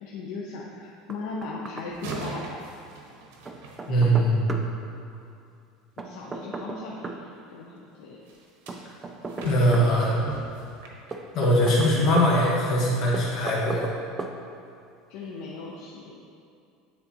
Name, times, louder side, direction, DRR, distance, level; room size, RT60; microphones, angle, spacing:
voice 1, 0.0-2.7 6.0-8.2 15.1-16.2, left 3 dB, 60° left, -3 dB, 0.6 m, -38 dB
Knock, 1.1-1.9 2.1-2.2 3.4-4.7 6.0-7.2 8.7-9.9 11.1-12.3 13.1-13.9 14.2-14.3, right 3 dB, 15° right, 0.3 m, -35 dB
sound 1, 1.9-4.5 8.3-12.0 12.5-12.7 13.2-13.3, right 3 dB, 85° right, 0.9 m, -41 dB
voice 2, 3.9-4.4 9.4-10.2 11.3-13.9, equal, 40° left, -4 dB, 1.2 m, -21 dB
9.2 x 3.8 x 2.9 m, 2.5 s
cardioid pair, 170°, 0 cm